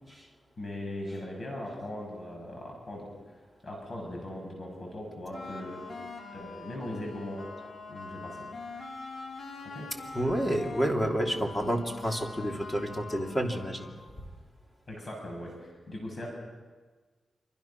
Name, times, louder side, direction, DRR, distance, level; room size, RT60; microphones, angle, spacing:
voice 1, 0.6-5.8 6.3-7.5 7.9-8.4 9.7-9.9 14.9-16.3, left 1 dB, 45° left, 0 dB, 6.8 m, -39 dB
sound 1, 5.3-14.1, left 3 dB, 65° left, 4.0 m, -44 dB
voice 2, 10.1-14.0, equal, 15° left, 1 dB, 3.1 m, -29 dB
27.0 x 24.5 x 6.0 m, 1.4 s
wide cardioid pair, 125°, 0 cm